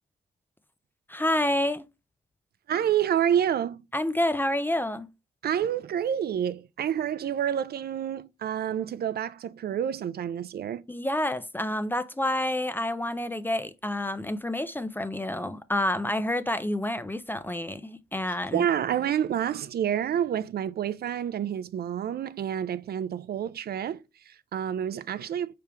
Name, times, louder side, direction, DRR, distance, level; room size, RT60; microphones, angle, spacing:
voice 1, 1.1-1.8 3.9-5.1 10.9-18.7, left 1 dB, 10° left, 0.4 m, -28 dB
voice 2, 2.7-3.8 5.4-10.8 18.5-25.5, right 9 dB, 60° right, 0.4 m, -28 dB
4.6 x 3.4 x 2.9 m
cardioid pair, 80°, 18 cm